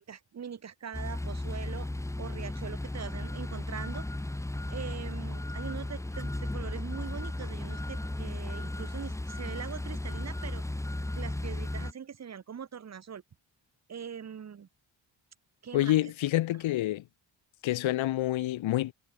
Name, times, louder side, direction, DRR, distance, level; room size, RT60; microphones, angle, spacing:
voice 1, 0.0-1.9 2.2-4.1 4.7-10.6 11.1-13.2 13.9-14.7 15.6-16.1, right 7 dB, 35° right, 0.9 m, -42 dB
sound 1, 0.9-11.9, left 1 dB, 5° left, 0.9 m, -35 dB
voice 2, 15.7-17.0 17.6-18.9, left 15 dB, 80° left, 0.7 m, -27 dB
wide cardioid pair, 120°, 46 cm